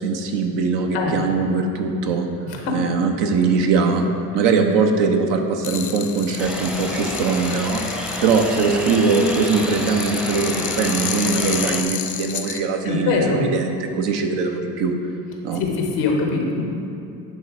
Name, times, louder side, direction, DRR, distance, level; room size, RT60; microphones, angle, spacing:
voice 1, 0.0-2.3 2.7-4.0 4.3-7.8 8.2-15.0 15.4-15.6, right 4 dB, 70° right, 4 dB, 0.8 m, -21 dB
sound 1, 5.6-12.6, left 8 dB, 45° left, 0.6 m, -31 dB
sound 2, 6.4-11.8, equal, ahead, 0.6 m, -29 dB
voice 2, 12.8-13.4 15.6-16.6, left 4 dB, 90° left, 1 dB, 1.0 m, -22 dB
8.4 x 3.3 x 4.6 m, 2.6 s
hypercardioid pair, 55°, 44 cm